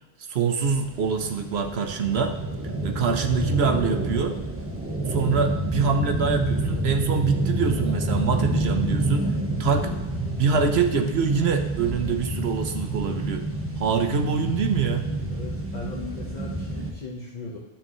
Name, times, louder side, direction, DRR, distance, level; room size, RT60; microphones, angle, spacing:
voice 1, 0.3-2.4 2.8-4.4 5.1-9.3 9.6-10.0 10.4-13.5 13.8-15.1, right 5 dB, 80° right, 6 dB, 1.1 m, -25 dB
sound 1, 0.7-16.9, right 2 dB, 15° right, 1.2 m, -28 dB
voice 2, 15.3-17.6, left 3 dB, 45° left, -4 dB, 1.3 m, -37 dB
11.5 x 6.8 x 3.1 m, 1.1 s
omnidirectional pair, 1.0 m